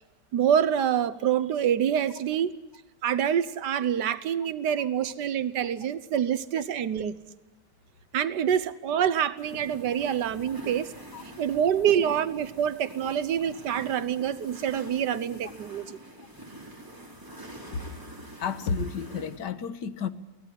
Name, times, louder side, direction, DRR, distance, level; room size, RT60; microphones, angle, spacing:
voice 1, 0.3-2.6 3.0-7.1 8.1-10.9 11.4-16.0, right 9 dB, 85° right, 14 dB, 1.6 m, -26 dB
sound 1, 9.4-19.4, right 1 dB, 10° right, 3.6 m, -45 dB
voice 2, 18.4-20.1, left 5 dB, 85° left, 12 dB, 1.8 m, -32 dB
24.0 x 17.0 x 9.9 m, 1.0 s
omnidirectional pair, 1.8 m